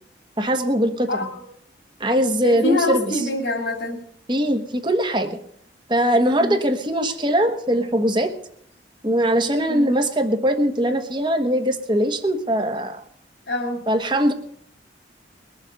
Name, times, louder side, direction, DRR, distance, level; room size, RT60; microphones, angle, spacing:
voice 1, 0.4-1.3 2.0-3.1 4.3-5.4 5.9-8.3 9.0-13.0 13.9-14.3, equal, 25° right, 7 dB, 1.3 m, -21 dB
voice 2, 1.1-1.4 2.4-4.0 6.3-6.6 9.7-10.0 13.5-13.8, left 2 dB, 70° left, 0 dB, 2.6 m, -25 dB
21.5 x 7.2 x 6.6 m, 0.65 s
head